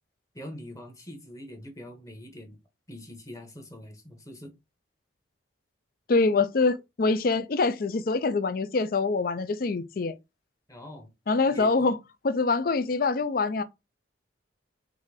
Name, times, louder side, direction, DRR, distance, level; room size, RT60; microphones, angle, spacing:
voice 1, 0.3-2.6 2.9-4.5 10.7-11.1 11.4-11.7, equal, 15° left, 1.0 m, -43 dB
voice 2, 6.1-10.1 11.3-12.0 12.2-13.6, left 3 dB, 50° left, 0.4 m, -25 dB
3.8 x 2.7 x 4.8 m
head